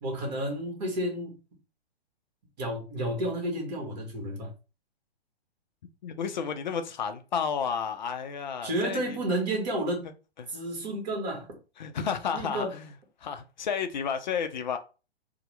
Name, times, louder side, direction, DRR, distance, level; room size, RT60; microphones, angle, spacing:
voice 1, 0.0-1.4 2.6-4.5 8.6-10.1 10.5-11.6 12.3-12.7, right 1 dB, 45° right, 1.2 m, -31 dB
voice 2, 6.0-9.2 10.4-10.5 11.8-12.9 13.2-14.8, left 6 dB, 45° left, 0.4 m, -32 dB
2.8 x 2.1 x 3.1 m
figure-of-eight pair, 120°, 31 cm